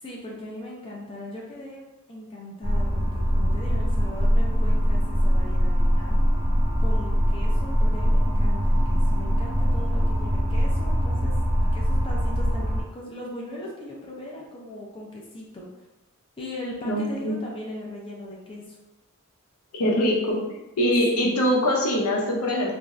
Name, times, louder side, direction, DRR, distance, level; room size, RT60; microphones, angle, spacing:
voice 1, 0.0-6.2 6.8-11.3 11.7-15.7 16.4-18.8 20.2-20.6 21.1-21.3, left 1 dB, 25° left, -3 dB, 0.5 m, -39 dB
sound 1, 2.6-12.8, equal, 25° right, 0.6 m, -22 dB
voice 2, 16.8-17.3 19.7-20.4 20.8-22.7, equal, 85° left, -1 dB, 0.6 m, -23 dB
2.6 x 2.3 x 3.1 m, 0.99 s
head